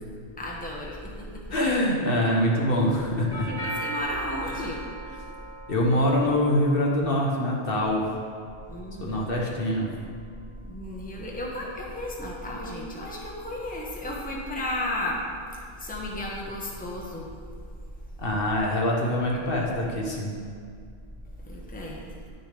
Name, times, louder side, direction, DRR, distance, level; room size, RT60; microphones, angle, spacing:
voice 1, 0.4-1.4 3.5-4.8 8.7-9.3 10.6-15.2 15.8-17.3 19.3-19.4 21.5-22.0, left 1 dB, 10° left, -3 dB, 1.1 m, -34 dB
voice 2, 1.5-3.5 4.4-4.7 5.7-8.0 9.0-9.9 18.2-20.4, left 1 dB, 60° left, -2 dB, 1.2 m, -24 dB
Doorbell, 3.3-11.4, right 1 dB, 40° right, 2.5 m, -41 dB
10.5 x 6.5 x 3.4 m, 2.2 s
omnidirectional pair, 1.1 m